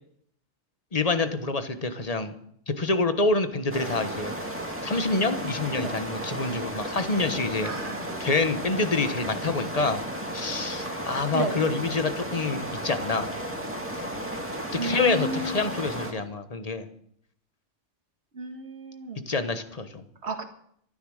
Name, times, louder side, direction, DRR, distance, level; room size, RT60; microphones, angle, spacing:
voice 1, 0.9-2.3 2.7-4.3 4.8-7.7 8.2-10.0 10.3-13.3 14.8-16.9 19.3-20.0, left 3 dB, 35° left, 9 dB, 1.2 m, -27 dB
sound 1, 3.7-16.1, right 1 dB, 10° right, 2.1 m, -34 dB
voice 2, 7.6-8.1 11.3-11.6 14.8-15.5 18.4-19.2 20.2-20.4, right 3 dB, 65° right, 6 dB, 1.9 m, -32 dB
13.5 x 11.5 x 6.4 m, 0.68 s
omnidirectional pair, 1.2 m